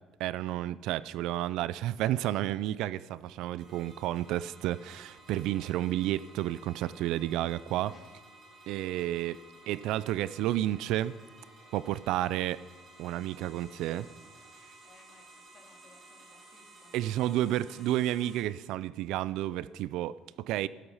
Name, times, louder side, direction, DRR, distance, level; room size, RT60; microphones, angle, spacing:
voice 1, 0.2-7.9 8.7-11.1 11.7-12.6 13.0-14.1 16.9-20.7, right 13 dB, 80° right, 18 dB, 0.4 m, -31 dB
sound 1, 3.6-18.4, right 1 dB, 40° right, 3.3 m, -55 dB
voice 2, 14.8-17.7, left 4 dB, 35° left, 2 dB, 2.4 m, -61 dB
13.0 x 12.0 x 5.6 m, 1.3 s
cardioid pair, 155°, 0 cm